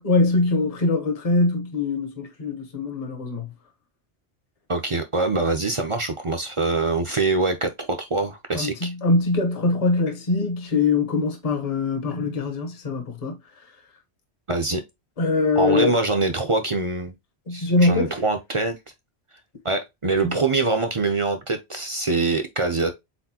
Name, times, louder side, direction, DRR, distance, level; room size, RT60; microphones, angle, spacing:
voice 1, 0.0-3.5 8.5-13.7 15.2-16.0 17.5-18.2 20.2-20.4, left 3 dB, 35° left, 1.0 m, -23 dB
voice 2, 4.7-8.9 14.5-14.8 15.6-17.1 17.5-18.8 19.6-22.9, right 3 dB, 35° right, 0.6 m, -24 dB
4.3 x 4.0 x 2.8 m
omnidirectional pair, 1.1 m